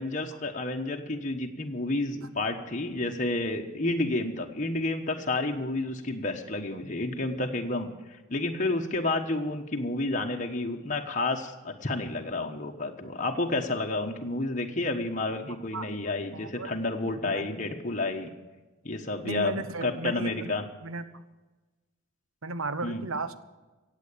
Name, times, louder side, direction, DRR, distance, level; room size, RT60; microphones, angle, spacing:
voice 1, 0.0-18.3 18.8-20.6 22.8-23.0, left 2 dB, 35° left, 2 dB, 1.3 m, -30 dB
voice 2, 15.7-16.7 17.0-17.4 19.2-20.5 20.8-21.0 22.4-23.4, right 3 dB, 85° right, 12 dB, 1.0 m, -35 dB
15.5 x 8.4 x 8.4 m, 1.2 s
head